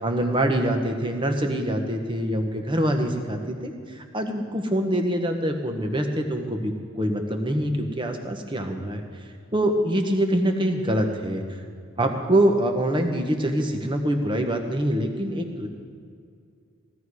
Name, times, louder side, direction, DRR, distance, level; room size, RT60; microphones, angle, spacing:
voice 1, 0.0-9.0 9.5-11.4 12.0-15.7, right 1 dB, 20° right, 4 dB, 1.2 m, -25 dB
16.5 x 12.5 x 4.9 m, 2.3 s
head